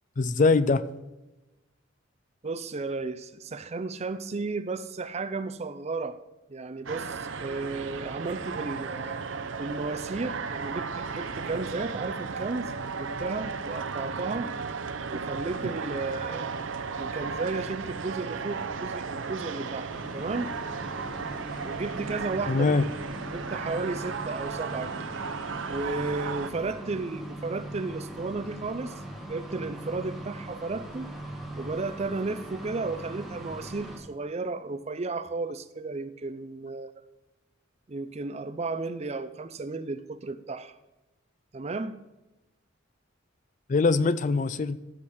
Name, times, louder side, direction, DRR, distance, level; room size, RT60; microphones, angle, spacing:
voice 1, 0.2-0.8 22.5-22.8 43.7-44.8, left 3 dB, 40° left, 15 dB, 0.4 m, -22 dB
voice 2, 2.4-6.2 6.5-9.2 9.6-14.5 15.1-16.5 17.0-20.5 21.6-22.8 23.3-25.1 25.7-28.9 29.2-31.1 31.6-37.0 37.9-40.7 41.5-42.0, right 3 dB, 35° right, 12 dB, 0.5 m, -34 dB
sound 1, 6.9-26.5, right 5 dB, 70° right, 0.6 m, -35 dB
sound 2, 19.9-34.0, right 1 dB, ahead, 1.6 m, -41 dB
15.5 x 6.5 x 4.3 m, 1.0 s
head